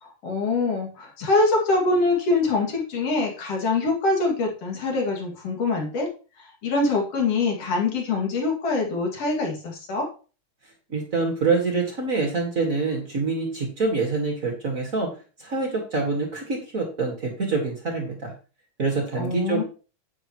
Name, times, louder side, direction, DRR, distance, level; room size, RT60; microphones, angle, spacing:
voice 1, 0.0-6.1 6.4-10.1 19.2-19.6, left 3 dB, 50° left, 0 dB, 3.1 m, -24 dB
voice 2, 10.9-15.1 15.4-18.3 18.8-19.6, right 3 dB, 40° right, 1 dB, 1.3 m, -26 dB
9.9 x 8.5 x 3.0 m, 0.35 s
omnidirectional pair, 3.8 m